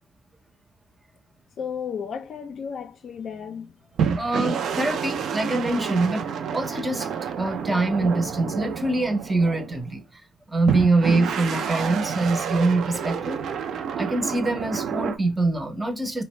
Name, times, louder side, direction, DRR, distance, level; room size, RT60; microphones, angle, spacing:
voice 1, 1.6-3.7, left 7 dB, 60° left, 0.4 m, -33 dB
sound 1, 4.0-9.9 10.7-15.2, right 7 dB, 70° right, 0.4 m, -29 dB
voice 2, 4.2-6.2 6.5-7.1 7.4-10.0 10.5-13.4 14.0-16.2, right 2 dB, 20° right, 0.6 m, -24 dB
2.4 x 2.1 x 3.1 m
cardioid pair, 90°, 0 cm